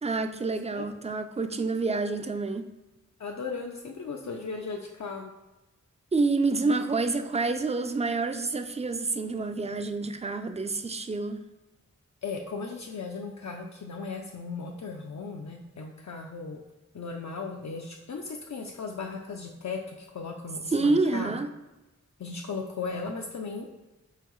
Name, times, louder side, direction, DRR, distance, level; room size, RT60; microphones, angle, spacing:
voice 1, 0.0-2.7 6.1-11.5 20.7-21.5, right 3 dB, 20° right, 9 dB, 0.3 m, -28 dB
voice 2, 3.2-5.3 12.2-16.6 16.9-21.3 22.2-23.9, left 4 dB, 65° left, 1 dB, 0.5 m, -37 dB
5.6 x 3.0 x 3.1 m, 1.1 s
wide cardioid pair, 55°, 30 cm